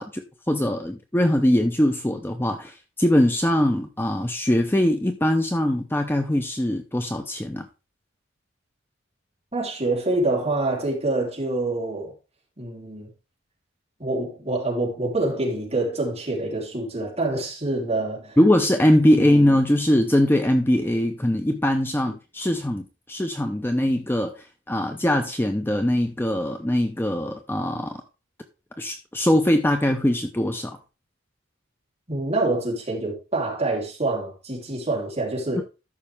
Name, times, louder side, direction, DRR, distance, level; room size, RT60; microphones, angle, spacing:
voice 1, 0.0-7.7 18.4-28.0 28.8-30.8, left 1 dB, 10° left, 0.6 m, -22 dB
voice 2, 9.5-12.1 12.6-13.1 14.0-18.4 19.1-19.4 32.1-35.6, right 2 dB, 30° right, 3.6 m, -26 dB
13.0 x 5.8 x 3.5 m
head